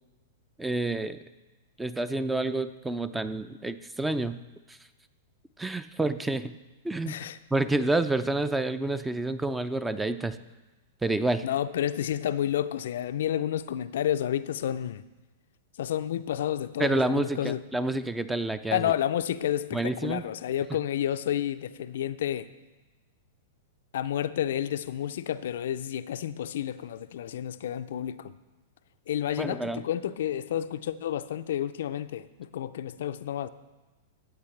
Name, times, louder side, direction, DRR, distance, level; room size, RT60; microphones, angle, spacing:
voice 1, 0.6-1.2 1.8-4.4 4.7-4.8 5.6-6.6 6.8-10.4 11.0-11.5 16.8-18.9 19.7-20.2 29.4-29.8, right 2 dB, 10° right, 13 dB, 0.4 m, -29 dB
voice 2, 7.1-7.4 11.4-15.0 15.8-17.6 18.7-22.5 23.9-28.3 29.1-33.5, left 10 dB, 65° left, 12 dB, 0.4 m, -30 dB
14.0 x 8.1 x 3.2 m, 1.1 s
hypercardioid pair, 110°, 0 cm